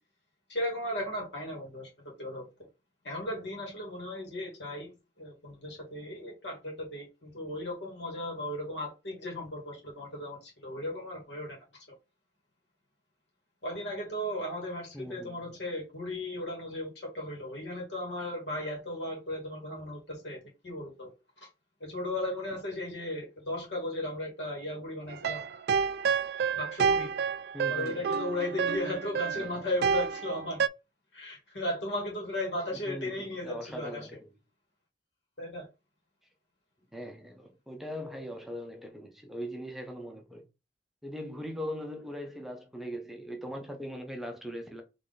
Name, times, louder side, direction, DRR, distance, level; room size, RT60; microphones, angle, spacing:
voice 1, 0.5-1.9 2.2-2.5 3.0-11.6 13.6-21.1 21.4-21.5 21.8-25.4 26.5-27.1 27.7-30.6 31.1-34.1 35.4-35.7, left 1 dB, 85° left, 2.0 m, -36 dB
voice 2, 14.9-15.6 27.5-28.1 29.3-29.7 32.7-34.2 36.9-40.4 41.0-44.8, equal, ahead, 0.7 m, -40 dB
sound 1, 25.1-30.7, right 6 dB, 60° right, 0.3 m, -29 dB
3.8 x 3.2 x 3.8 m
head